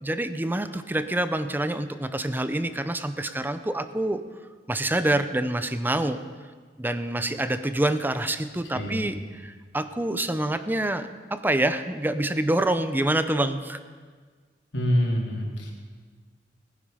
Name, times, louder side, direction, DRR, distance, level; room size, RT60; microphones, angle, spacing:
voice 1, 0.0-4.2 4.7-6.2 6.8-13.8, right 1 dB, 10° right, 11 dB, 0.6 m, -26 dB
voice 2, 8.7-9.1 14.7-15.7, equal, 90° left, -2 dB, 3.5 m, -26 dB
19.5 x 10.0 x 5.6 m, 1.5 s
head